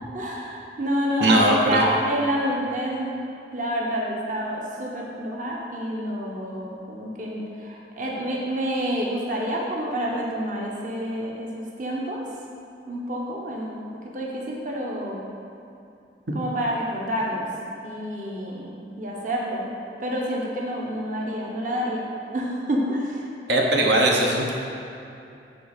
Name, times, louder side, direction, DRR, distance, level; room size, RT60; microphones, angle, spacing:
voice 1, 0.1-3.1 3.5-12.2 12.9-13.9 14.1-15.2 16.3-17.5 17.8-18.7 19.0-19.7 20.0-23.3, equal, 45° right, -3 dB, 1.1 m, -28 dB
voice 2, 1.2-1.8 23.5-24.5, right 1 dB, 70° right, -1 dB, 1.1 m, -19 dB
10.0 x 4.1 x 7.2 m, 2.7 s
head